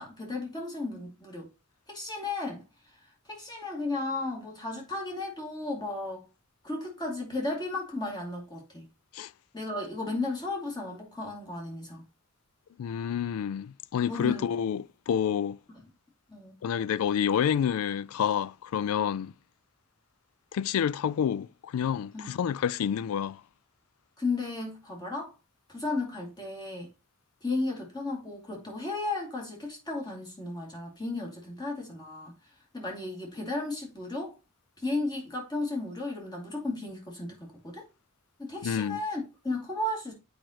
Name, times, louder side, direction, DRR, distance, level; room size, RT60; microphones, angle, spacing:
voice 1, 0.0-1.5 1.9-2.6 3.3-6.2 6.6-8.9 9.5-12.0 14.1-14.5 15.7-15.9 16.3-16.6 22.1-22.3 24.2-25.3 25.7-26.9 27.4-32.3 32.7-34.3 34.8-37.9 38.4-40.1, left 2 dB, 20° left, 2.4 m, -34 dB
voice 2, 12.8-15.6 16.6-19.3 20.5-23.4 38.6-39.0, left 8 dB, 75° left, 0.3 m, -28 dB
7.7 x 5.1 x 2.9 m
head